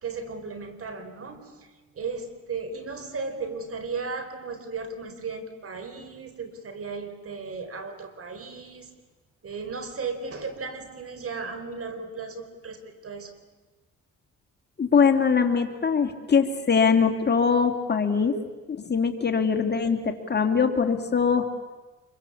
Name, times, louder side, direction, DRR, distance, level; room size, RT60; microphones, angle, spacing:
voice 1, 0.0-8.9 9.4-13.3, right 4 dB, 50° right, 9 dB, 4.1 m, -35 dB
voice 2, 14.8-18.4 18.7-21.5, left 6 dB, 35° left, 6 dB, 2.6 m, -22 dB
26.0 x 23.0 x 8.5 m, 1.2 s
cardioid pair, 90°, 30 cm